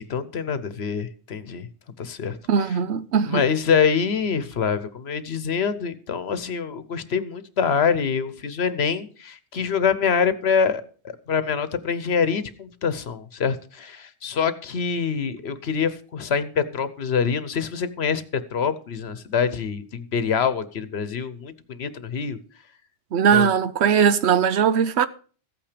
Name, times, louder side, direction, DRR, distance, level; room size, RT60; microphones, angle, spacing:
voice 1, 0.0-1.7 2.0-2.4 3.3-22.4 23.3-23.5, left 6 dB, 65° left, 1.1 m, -25 dB
voice 2, 2.5-3.4 23.1-25.1, right 7 dB, 70° right, 1.0 m, -19 dB
14.5 x 8.8 x 5.1 m
omnidirectional pair, 1.2 m